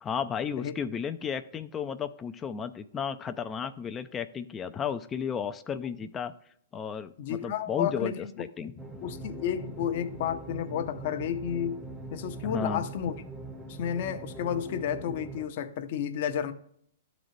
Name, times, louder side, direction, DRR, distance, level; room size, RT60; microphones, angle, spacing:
voice 1, 0.0-6.3 6.7-8.7 12.4-12.8, left 7 dB, 20° left, 0.4 m, -33 dB
voice 2, 7.2-8.4 9.0-11.8 12.1-13.2 13.7-16.5, left 9 dB, 55° left, 0.8 m, -31 dB
sound 1, 8.8-15.5, right 2 dB, 10° right, 0.8 m, -42 dB
12.0 x 3.9 x 3.2 m
hypercardioid pair, 130°, 0 cm